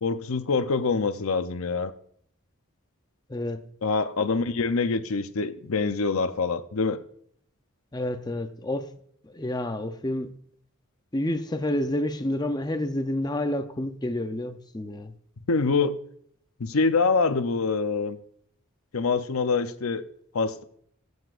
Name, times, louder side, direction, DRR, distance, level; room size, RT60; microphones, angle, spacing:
voice 1, 0.0-1.9 3.8-7.0 15.5-16.0 16.6-18.2 18.9-20.0 20.3-20.6, left 4 dB, 75° left, 0.7 m, -25 dB
voice 2, 7.9-8.9 9.2-10.3 11.1-15.1, left 1 dB, 20° left, 0.6 m, -29 dB
19.5 x 8.0 x 2.5 m
head